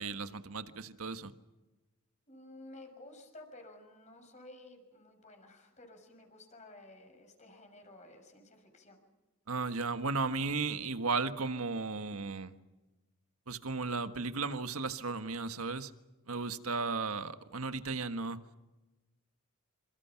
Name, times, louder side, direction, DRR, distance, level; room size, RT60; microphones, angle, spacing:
voice 1, 0.0-1.3 9.5-12.5 13.5-15.9 16.3-18.4, right 4 dB, 85° right, 9 dB, 1.5 m, -35 dB
voice 2, 2.3-9.0, left 2 dB, 30° left, 5 dB, 6.2 m, -53 dB
28.0 x 26.5 x 5.9 m, 1.1 s
head